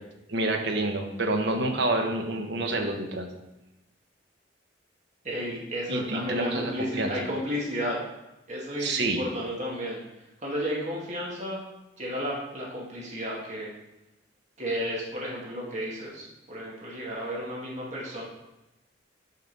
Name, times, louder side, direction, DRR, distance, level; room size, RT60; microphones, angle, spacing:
voice 1, 0.3-3.3 5.9-7.1 8.8-9.2, right 2 dB, 65° right, 3 dB, 1.1 m, -28 dB
voice 2, 5.2-8.0 8.5-10.0 10.4-11.6 12.0-13.7 14.6-18.2, equal, 40° right, -4 dB, 2.0 m, -32 dB
5.6 x 5.5 x 5.4 m, 0.97 s
head